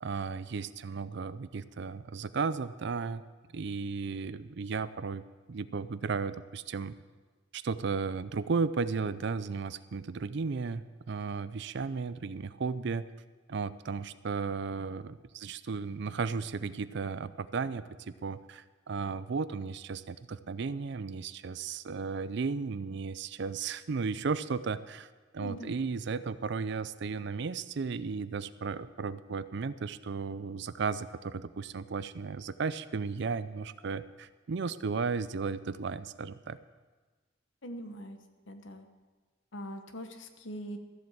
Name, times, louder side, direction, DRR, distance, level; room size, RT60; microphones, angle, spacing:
voice 1, 0.0-3.2 3.5-5.2 5.5-6.9 7.5-13.1 13.5-36.6, right 5 dB, 60° right, 15 dB, 0.5 m, -34 dB
voice 2, 25.4-25.7 37.6-38.2 38.5-38.9 39.5-40.8, equal, 75° left, 7 dB, 1.2 m, -42 dB
13.5 x 7.7 x 7.1 m, 1.3 s
head